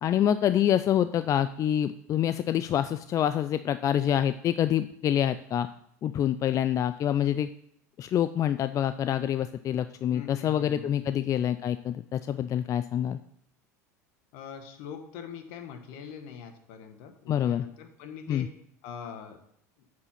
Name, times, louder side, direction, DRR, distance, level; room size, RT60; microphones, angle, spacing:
voice 1, 0.0-5.7 6.0-7.5 8.0-13.2 17.3-17.7 18.3-18.5, left 10 dB, 35° left, 13 dB, 0.3 m, -26 dB
voice 2, 10.1-11.3 14.3-18.5 18.8-19.4, left 7 dB, 65° left, 7 dB, 1.3 m, -43 dB
8.3 x 4.8 x 5.7 m, 0.73 s
hypercardioid pair, 85°, 9 cm